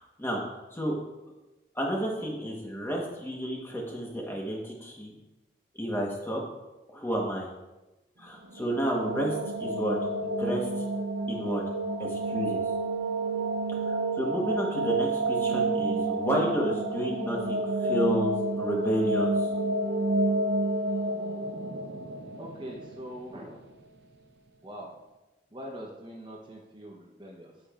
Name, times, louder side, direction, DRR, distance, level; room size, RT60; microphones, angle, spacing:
voice 1, 0.2-0.9 1.7-5.1 5.8-6.4 6.9-7.5 8.2-10.7 11.3-11.6 12.0-12.6 13.7-19.5, equal, 15° left, -1 dB, 1.2 m, -31 dB
sound 1, 8.4-23.4, right 2 dB, 70° right, 0.6 m, -30 dB
voice 2, 22.4-23.6 24.6-24.9 25.5-27.6, equal, 25° right, -1 dB, 0.9 m, -42 dB
8.5 x 8.3 x 2.5 m, 1.1 s
head